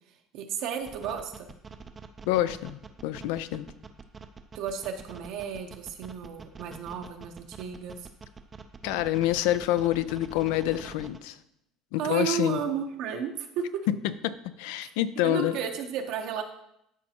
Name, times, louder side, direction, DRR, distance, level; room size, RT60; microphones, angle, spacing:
voice 1, 0.3-1.5 4.5-8.1 12.0-13.6 14.8-14.9 15.2-16.4, right 8 dB, 60° right, 4 dB, 0.8 m, -33 dB
sound 1, 0.8-11.2, right 5 dB, 20° right, 0.4 m, -45 dB
voice 2, 2.3-3.7 8.8-11.4 11.9-12.6 14.2-15.6, left 14 dB, 85° left, 13 dB, 0.5 m, -27 dB
13.0 x 5.3 x 2.9 m, 0.79 s
cardioid pair, 160°, 0 cm